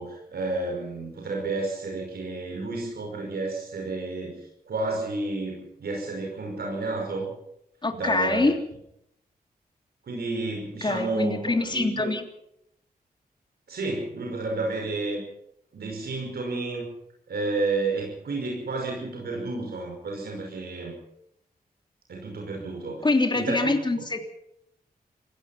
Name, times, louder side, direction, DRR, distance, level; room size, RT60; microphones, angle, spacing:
voice 1, 0.0-7.3 7.9-8.5 10.0-12.1 13.7-15.2 15.7-16.9 17.3-21.0 22.1-23.1 23.3-23.7, right 3 dB, 80° right, 0 dB, 5.5 m, -31 dB
voice 2, 7.8-8.6 10.8-12.2 23.0-24.2, left 2 dB, 30° left, 5 dB, 3.2 m, -24 dB
26.5 x 17.0 x 5.9 m, 0.78 s
cardioid pair, 85°, 16 cm